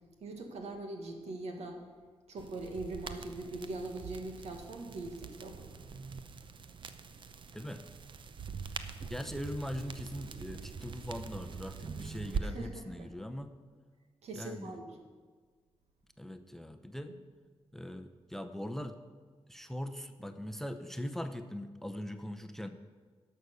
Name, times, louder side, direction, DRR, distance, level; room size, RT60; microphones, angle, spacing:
voice 1, 0.2-1.8 2.3-5.6 12.4-13.1 14.2-15.0, right 2 dB, 85° right, 3 dB, 1.7 m, -41 dB
sound 1, 2.4-12.4, right 6 dB, 50° right, 0.7 m, -43 dB
voice 2, 9.0-13.5 14.3-14.7 16.2-17.1 17.7-19.0 19.5-22.7, equal, 5° left, 9 dB, 0.7 m, -41 dB
11.0 x 6.5 x 6.9 m, 1.5 s
cardioid pair, 90°, 11 cm